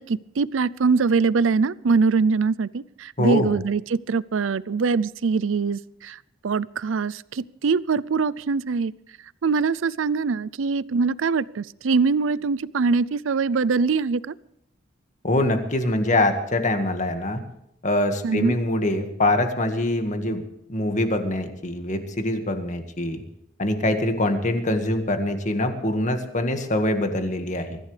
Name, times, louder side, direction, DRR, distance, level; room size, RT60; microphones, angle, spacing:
voice 1, 0.0-6.2 6.4-8.9 9.4-14.3 18.2-18.6, right 4 dB, 75° right, 20 dB, 0.5 m, -23 dB
voice 2, 3.2-3.5 15.2-17.4 17.8-20.4 20.7-23.2 23.6-27.8, left 1 dB, 40° left, 6 dB, 1.9 m, -24 dB
24.0 x 14.5 x 3.4 m, 0.78 s
head